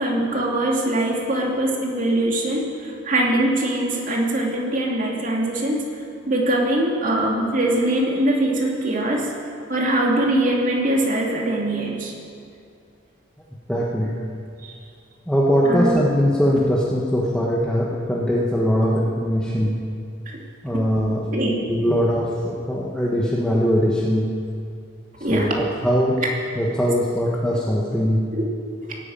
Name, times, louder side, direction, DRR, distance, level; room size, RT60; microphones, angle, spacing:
voice 1, 0.0-5.9 6.3-9.3 9.7-12.1 14.6-14.7 15.6-16.0 20.3-20.4 21.3-21.5 21.8-21.9 25.2-25.5 28.3-28.4, right 1 dB, 40° right, -2 dB, 2.8 m, -22 dB
voice 2, 13.7-14.1 15.3-19.8 20.6-21.2 21.7-22.3 22.7-24.3 25.3-26.2 26.6-28.2, equal, 5° left, -5 dB, 1.3 m, -21 dB
17.0 x 9.2 x 9.0 m, 2.4 s
head